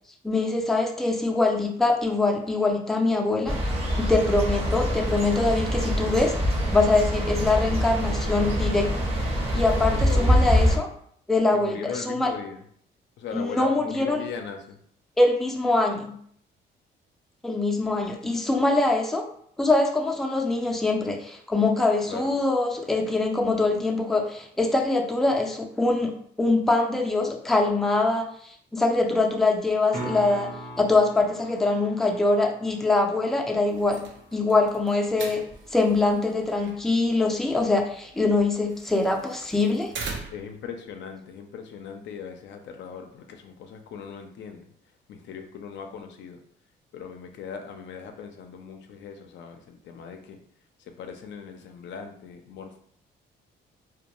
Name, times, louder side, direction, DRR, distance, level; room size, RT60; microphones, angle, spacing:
voice 1, 0.2-3.6 4.0-6.3 6.7-8.9 9.5-10.9 11.3-12.3 13.3-14.2 15.2-16.1 17.4-19.3 19.6-26.1 26.4-30.5 30.8-34.0 34.3-35.4 35.7-39.9, left 2 dB, ahead, 1 dB, 0.4 m, -23 dB
sound 1, 3.5-10.8, equal, 30° right, 0.7 m, -24 dB
voice 2, 9.9-10.5 11.5-12.6 13.2-14.8 22.1-22.3 40.3-44.7 45.1-46.4 46.9-50.4 50.8-52.8, left 6 dB, 65° left, 5 dB, 0.4 m, -39 dB
sound 2, 29.9-35.9 40.6-40.7, right 2 dB, 50° right, 0.9 m, -42 dB
sound 3, 33.7-40.6, right 4 dB, 70° right, 0.5 m, -42 dB
2.3 x 2.2 x 2.9 m, 0.63 s
cardioid pair, 90°, 20 cm